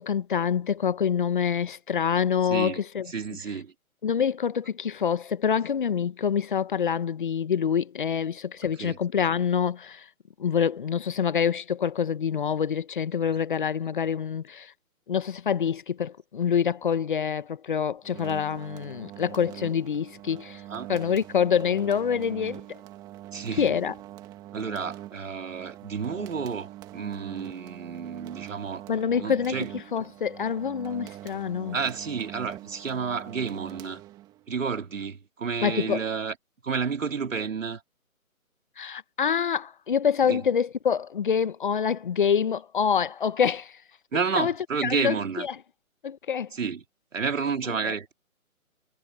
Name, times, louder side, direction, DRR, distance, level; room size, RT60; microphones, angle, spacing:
voice 1, 0.0-3.1 4.0-10.0 10.4-14.7 15.1-20.6 20.9-22.6 23.6-23.9 28.9-29.5 29.9-31.7 35.6-36.0 38.8-43.7 44.4-44.5 44.8-45.1 46.0-46.5, left 7 dB, 35° left, 1.2 m, -26 dB
voice 2, 2.4-3.7 8.8-9.0 20.7-20.9 23.3-23.7 24.5-28.9 29.2-29.7 31.7-34.0 34.5-36.4 36.6-37.8 40.2-40.5 44.1-45.5 46.5-46.8 47.1-48.1, right 5 dB, 60° right, 4.0 m, -31 dB
sound 1, 18.0-34.5, right 14 dB, 10° right, 2.0 m, -43 dB
figure-of-eight pair, 160°, 43 cm